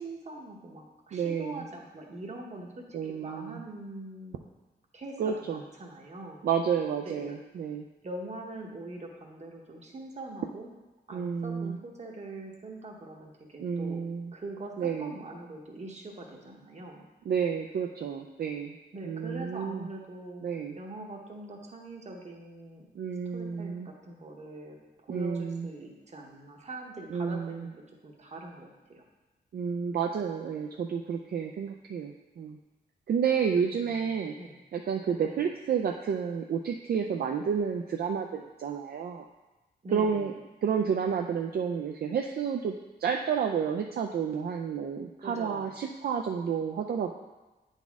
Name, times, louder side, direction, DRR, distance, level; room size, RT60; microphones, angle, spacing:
voice 1, 0.0-4.4 4.9-6.4 7.0-7.4 8.0-10.7 11.1-14.0 14.3-17.1 18.9-20.4 20.8-22.9 23.3-29.0 33.5-34.1 34.4-34.6 35.3-35.4 39.8-40.3 45.2-45.7, right 2 dB, 40° right, 1 dB, 1.0 m, -43 dB
voice 2, 1.1-1.6 2.9-3.6 5.2-5.6 6.4-7.9 11.1-11.8 13.6-14.3 14.8-15.1 17.3-18.7 19.0-19.9 20.4-20.8 23.0-23.9 25.1-25.7 27.1-27.7 29.5-32.6 33.1-34.3 34.7-39.3 39.9-40.3 40.6-42.7 43.0-47.1, right 7 dB, 65° right, 3 dB, 0.4 m, -30 dB
9.1 x 4.1 x 3.6 m, 1.1 s
wide cardioid pair, 150°, 17 cm